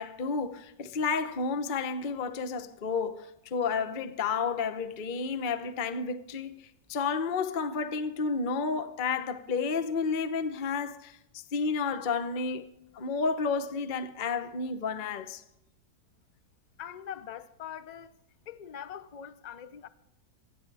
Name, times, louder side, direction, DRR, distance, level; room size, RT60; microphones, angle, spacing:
voice 1, 0.0-12.7 12.9-15.4, left 5 dB, 40° left, 0.8 m, -31 dB
voice 2, 16.8-18.2 18.5-19.9, left 9 dB, 75° left, 0.4 m, -42 dB
27.0 x 10.5 x 3.4 m
omnidirectional pair, 1.8 m